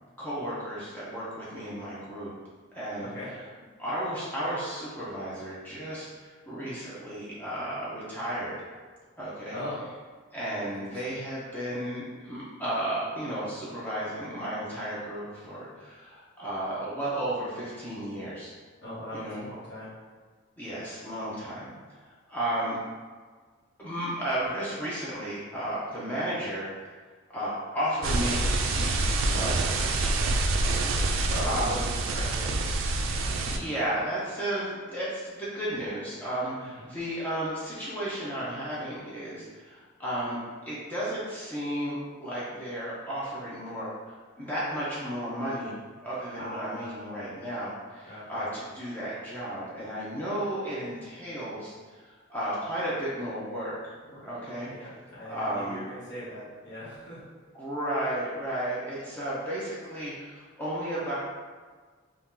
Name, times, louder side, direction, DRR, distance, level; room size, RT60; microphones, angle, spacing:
voice 1, 0.2-2.3 2.7-3.1 3.8-8.6 9.2-9.6 10.3-18.5 19.1-19.4 20.6-21.7 22.0-22.8 23.8-26.7 27.3-30.4 31.4-31.8 33.4-40.4 40.6-53.9 54.2-54.7 55.2-55.8 57.5-61.2, right 1 dB, 10° left, -9 dB, 0.6 m, -33 dB
voice 2, 10.4-11.2 18.8-19.9 31.3-32.9 36.7-36.9 46.4-47.3 48.1-48.5 54.1-54.3 54.7-57.2, equal, 55° left, -10 dB, 1.1 m, -40 dB
sound 1, 28.0-33.6, right 2 dB, 75° right, 0.3 m, -26 dB
2.7 x 2.3 x 3.6 m, 1.5 s
head